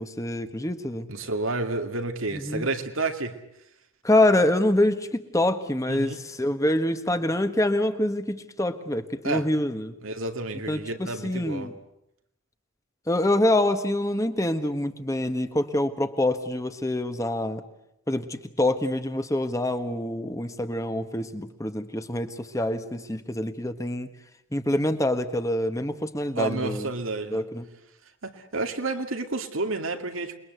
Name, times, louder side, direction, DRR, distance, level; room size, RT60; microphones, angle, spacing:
voice 1, 0.0-1.1 2.3-2.7 4.0-9.9 10.7-11.7 13.1-17.6 18.1-24.1 24.5-26.9 27.3-27.6, left 1 dB, 15° left, 1.4 m, -26 dB
voice 2, 1.1-3.4 5.9-6.2 9.2-9.5 10.0-11.7 26.4-27.5 28.2-30.3, right 3 dB, 85° right, 2.5 m, -30 dB
28.5 x 21.5 x 8.1 m
head